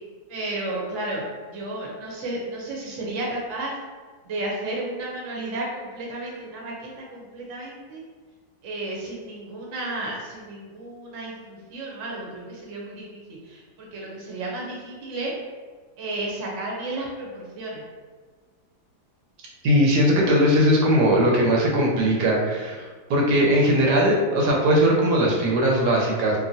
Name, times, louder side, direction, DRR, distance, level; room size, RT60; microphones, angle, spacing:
voice 1, 0.3-3.8 4.2-8.0 8.6-15.3 16.0-17.8 22.8-22.9, right 2 dB, 55° right, -3 dB, 0.9 m, -33 dB
voice 2, 19.6-22.8 23.1-26.4, equal, 90° right, -2 dB, 1.3 m, -19 dB
2.9 x 2.5 x 2.6 m, 1.4 s
omnidirectional pair, 1.8 m